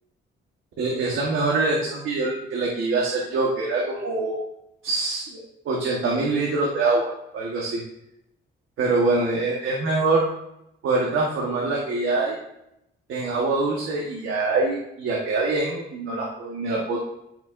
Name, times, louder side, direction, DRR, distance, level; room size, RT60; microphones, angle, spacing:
voice 1, 0.8-4.4 4.8-7.8 8.8-10.2 10.8-12.4 13.1-17.0, right 3 dB, 80° right, -3 dB, 1.3 m, -24 dB
12.0 x 4.9 x 2.5 m, 0.83 s
cardioid pair, 100°, 20 cm